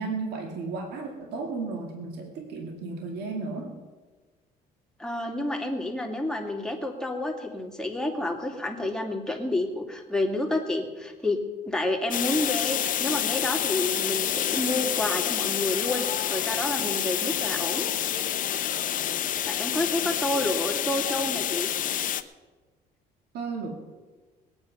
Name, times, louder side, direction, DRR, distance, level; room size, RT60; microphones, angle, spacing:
voice 1, 0.0-3.8 23.3-23.7, right 4 dB, 75° right, 2 dB, 2.3 m, -34 dB
voice 2, 5.0-17.9 19.4-21.7, left 1 dB, 5° left, 1 dB, 2.4 m, -29 dB
sound 1, 12.1-22.2, left 10 dB, 55° left, 0.8 m, -28 dB
21.0 x 8.8 x 5.6 m, 1.3 s
cardioid pair, 110°, 17 cm